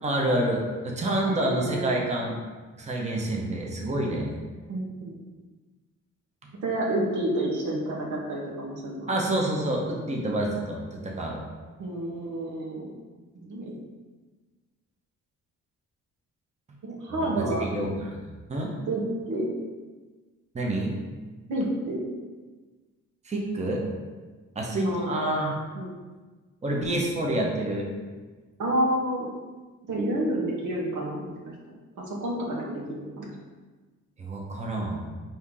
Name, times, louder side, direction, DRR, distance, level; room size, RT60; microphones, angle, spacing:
voice 1, 0.0-2.4 2.8-4.3 9.1-11.4 17.1-18.2 18.5-18.7 20.5-20.9 23.2-23.8 24.5-25.6 26.6-27.9 34.2-35.0, right 1 dB, 20° right, -1 dB, 0.8 m, -28 dB
voice 2, 1.2-1.9 4.7-5.2 6.6-9.1 11.8-12.9 13.3-13.8 17.0-17.7 18.9-19.0 19.3-19.5 21.5-22.0 24.7-25.1 25.7-25.9 28.6-29.3 29.9-31.3 32.0-33.3, right 1 dB, 80° right, -2 dB, 1.0 m, -29 dB
4.5 x 2.8 x 3.7 m, 1.3 s
cardioid pair, 90°, 30 cm